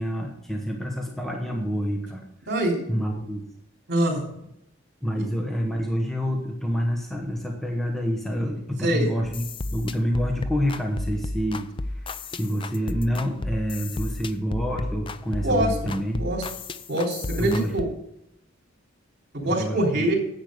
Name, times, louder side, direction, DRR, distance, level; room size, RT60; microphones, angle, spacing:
voice 1, 0.0-2.3 2.9-3.5 5.0-9.4 9.7-11.7 12.0-16.2 17.4-17.7 19.4-20.1, equal, ahead, 0 dB, 1.1 m, -27 dB
voice 2, 2.5-2.8 3.9-4.2 5.2-5.3 8.8-9.1 15.4-15.7 16.2-16.4 16.9-17.9 19.3-20.2, right 1 dB, 55° right, 0 dB, 3.2 m, -24 dB
sound 1, 9.2-17.8, left 2 dB, 25° left, 0.4 m, -32 dB
10.0 x 8.4 x 5.1 m, 0.79 s
head